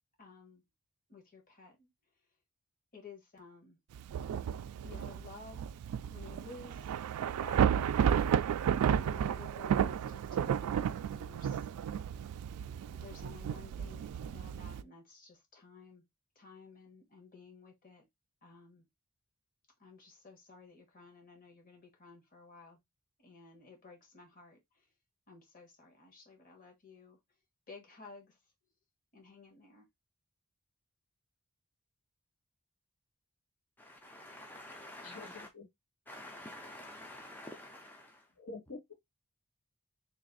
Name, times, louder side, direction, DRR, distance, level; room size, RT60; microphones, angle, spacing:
voice 1, 0.2-0.6 1.1-1.9 2.9-3.8 4.8-5.6 6.1-7.0 7.4-7.8 8.9-11.7 12.9-16.0 16.3-18.0 18.4-18.8 19.8-22.8 23.2-24.8 25.3-27.2 27.7-28.4 29.1-29.9, left 4 dB, 40° left, 1.2 m, -54 dB
Thunder / Rain, 3.9-14.8, right 8 dB, 85° right, 0.3 m, -32 dB
voice 2, 33.8-35.5 36.1-38.3, left 1 dB, 10° left, 0.4 m, -49 dB
voice 3, 35.0-35.6 38.4-38.9, left 3 dB, 75° left, 1.8 m, -47 dB
3.2 x 2.5 x 3.9 m
head